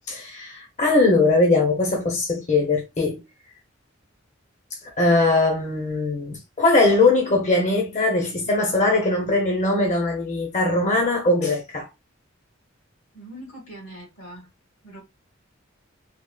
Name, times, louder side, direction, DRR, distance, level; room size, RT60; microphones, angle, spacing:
voice 1, 0.0-3.2 4.8-11.9, left 2 dB, 35° left, 0.7 m, -21 dB
voice 2, 13.1-14.5 14.8-15.0, right 1 dB, 80° left, 1.7 m, -41 dB
3.5 x 2.3 x 2.3 m
head